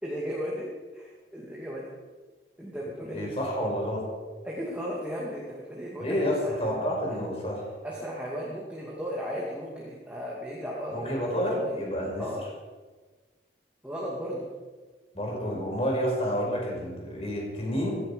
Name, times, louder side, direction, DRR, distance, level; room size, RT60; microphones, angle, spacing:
voice 1, 0.0-1.9 2.6-3.3 4.4-7.2 7.8-11.8 12.2-12.5 13.8-14.5, equal, 5° right, -5 dB, 2.4 m, -36 dB
voice 2, 3.1-4.1 6.0-7.6 10.9-12.2 15.1-18.0, equal, 35° left, -1 dB, 5.3 m, -29 dB
17.0 x 16.0 x 5.2 m, 1.4 s
head